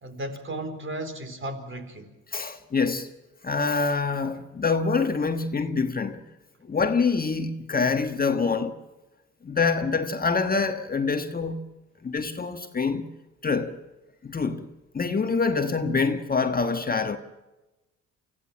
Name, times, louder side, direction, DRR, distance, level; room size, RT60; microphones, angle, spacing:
voice 1, 0.0-2.1, right 1 dB, 40° right, 4.1 m, -35 dB
voice 2, 2.3-3.1 3.4-6.2 6.7-8.8 9.4-11.6 12.0-13.1 13.4-13.8 14.2-14.7 14.9-17.2, left 4 dB, 25° left, 1.5 m, -25 dB
25.0 x 15.5 x 7.5 m
cardioid pair, 90°, 32 cm